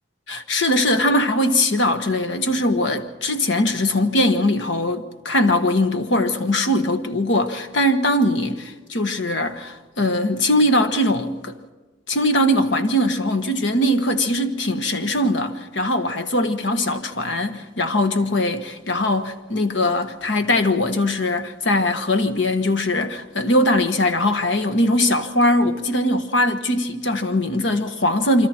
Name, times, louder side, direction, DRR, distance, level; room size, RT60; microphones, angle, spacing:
voice 1, 0.3-11.5 12.1-28.5, left 1 dB, 80° left, 1.4 m, -21 dB
28.0 x 25.0 x 4.5 m
head